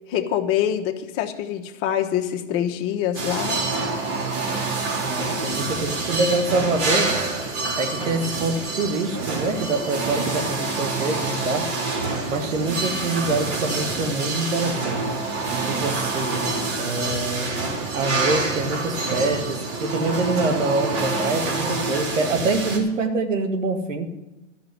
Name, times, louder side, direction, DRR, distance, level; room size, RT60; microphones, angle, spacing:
voice 1, 0.1-3.6, left 10 dB, 35° left, 4 dB, 1.1 m, -25 dB
sound 1, 3.1-22.8, right 3 dB, 40° right, 3.3 m, -27 dB
voice 2, 5.0-7.1 7.8-11.7 12.3-15.2 15.6-16.5 16.8-17.6 17.9-24.1, right 3 dB, 85° right, 7 dB, 1.8 m, -25 dB
12.5 x 6.3 x 9.2 m, 1.1 s
hypercardioid pair, 125°, 37 cm